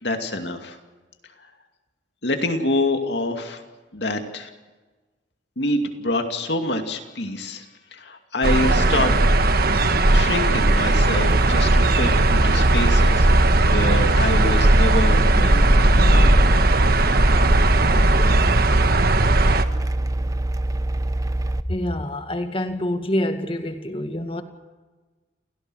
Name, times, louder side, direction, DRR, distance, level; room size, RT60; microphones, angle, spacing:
voice 1, 0.0-0.8 2.2-3.6 3.9-4.5 5.6-7.6 7.9-9.1 10.1-13.3 13.6-16.4, left 2 dB, 65° left, 5 dB, 2.5 m, -26 dB
sound 1, 8.4-19.6, right 2 dB, 55° right, 1.3 m, -18 dB
sound 2, 11.3-21.6, right 1 dB, 20° right, 0.7 m, -22 dB
voice 2, 21.7-24.4, left 1 dB, 30° left, 7 dB, 1.9 m, -26 dB
29.0 x 17.0 x 6.4 m, 1.3 s
head